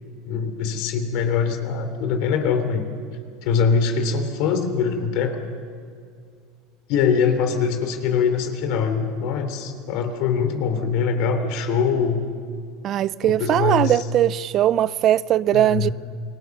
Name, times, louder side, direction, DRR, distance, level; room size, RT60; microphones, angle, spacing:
voice 1, 0.2-2.9 3.4-5.4 6.9-12.2 13.2-14.0 15.5-15.9, left 6 dB, 65° left, 3.3 m, -23 dB
voice 2, 12.8-15.9, right 12 dB, 45° right, 0.5 m, -20 dB
28.5 x 20.0 x 6.7 m
supercardioid pair, 100°, 0 cm